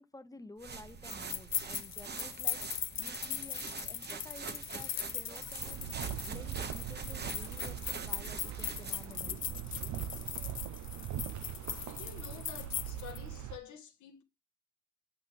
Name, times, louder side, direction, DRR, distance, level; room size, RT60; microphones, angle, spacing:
voice 1, 0.0-5.9 6.3-9.9, left 2 dB, 10° left, 1.0 m, -52 dB
sound 1, 0.6-9.2, right 5 dB, 35° right, 1.2 m, -44 dB
sound 2, 1.1-13.2, left 9 dB, 40° left, 0.6 m, -40 dB
sound 3, 5.6-13.6, right 11 dB, 70° right, 0.7 m, -41 dB
voice 2, 11.8-14.2, left 8 dB, 75° left, 1.6 m, -49 dB
8.3 x 8.1 x 3.5 m
cardioid pair, 90°, 30 cm